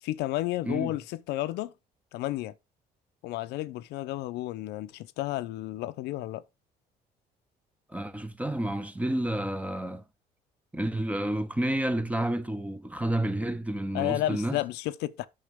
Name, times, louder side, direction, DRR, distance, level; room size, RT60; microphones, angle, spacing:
voice 1, 0.0-1.7 2.1-2.5 3.2-6.4 13.9-15.3, left 16 dB, 90° left, 0.7 m, -32 dB
voice 2, 7.9-10.0 10.7-14.6, right 1 dB, 10° right, 0.9 m, -30 dB
8.7 x 6.4 x 3.6 m
cardioid pair, 110°, 17 cm